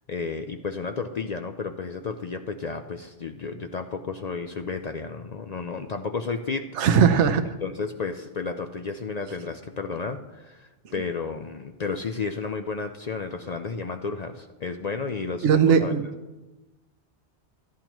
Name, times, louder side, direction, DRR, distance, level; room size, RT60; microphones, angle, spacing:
voice 1, 0.1-6.7 7.6-15.9, left 4 dB, 50° left, 6 dB, 0.5 m, -32 dB
voice 2, 6.8-7.5 15.4-16.1, right 7 dB, 85° right, 9 dB, 1.0 m, -19 dB
13.0 x 11.0 x 3.0 m, 1.1 s
omnidirectional pair, 1.2 m